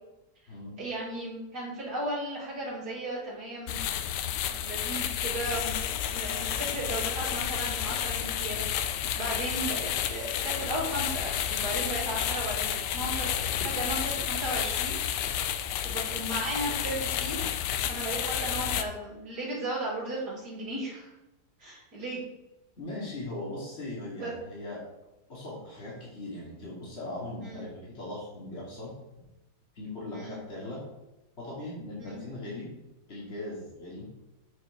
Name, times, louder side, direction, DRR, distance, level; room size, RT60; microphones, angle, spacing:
voice 1, 0.8-3.8 4.2-15.0 15.8-17.5 17.9-21.1 21.6-22.2 24.1-24.4 27.4-27.7 30.1-30.4 32.0-32.2, right 1 dB, 70° right, -6 dB, 3.0 m, -35 dB
sound 1, 3.7-18.8, left 10 dB, 85° left, 1.3 m, -31 dB
voice 2, 22.8-24.8 25.3-28.9 29.7-30.8 31.4-32.7 33.1-34.1, left 2 dB, 40° left, -6 dB, 2.6 m, -39 dB
8.1 x 4.8 x 4.8 m, 0.97 s
omnidirectional pair, 1.8 m